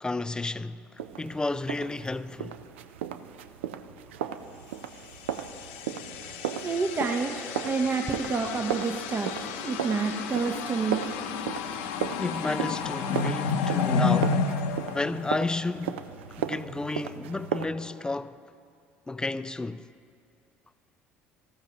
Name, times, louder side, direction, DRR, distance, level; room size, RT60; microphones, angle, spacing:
voice 1, 0.0-2.6 12.2-14.5 14.9-16.1 16.4-18.4 19.1-19.9, left 2 dB, 15° left, 0.3 m, -32 dB
sound 1, 1.0-17.7, right 9 dB, 85° right, 0.4 m, -36 dB
sound 2, 5.1-15.8, left 5 dB, 75° left, 0.7 m, -31 dB
voice 2, 6.6-7.3 7.6-11.0, right 4 dB, 35° right, 0.8 m, -28 dB
14.5 x 14.0 x 2.9 m
hypercardioid pair, 65°, 6 cm